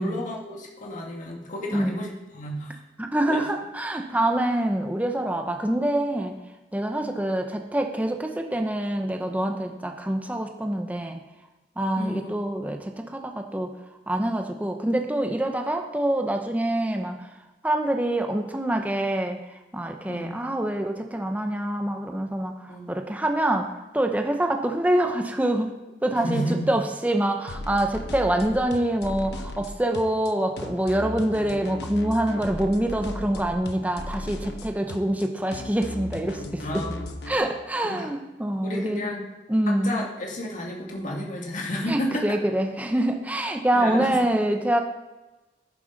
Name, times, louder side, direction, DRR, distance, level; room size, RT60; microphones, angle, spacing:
voice 1, 0.0-2.8 3.3-3.4 7.0-7.1 12.0-12.3 20.1-20.4 22.7-22.9 26.2-26.7 36.6-37.0 37.8-38.1 38.6-39.2 39.7-42.3 43.7-44.1, equal, 45° left, -1 dB, 2.1 m, -31 dB
voice 2, 1.7-2.1 3.0-6.4 6.7-11.2 11.8-13.7 14.1-17.3 17.6-25.7 26.0-36.8 37.3-39.2 39.5-40.0 41.9-44.8, right 1 dB, 10° right, 4 dB, 0.8 m, -25 dB
sound 1, 27.5-37.4, left 1 dB, 65° left, 1.0 m, -36 dB
11.0 x 10.0 x 4.1 m, 1.1 s
head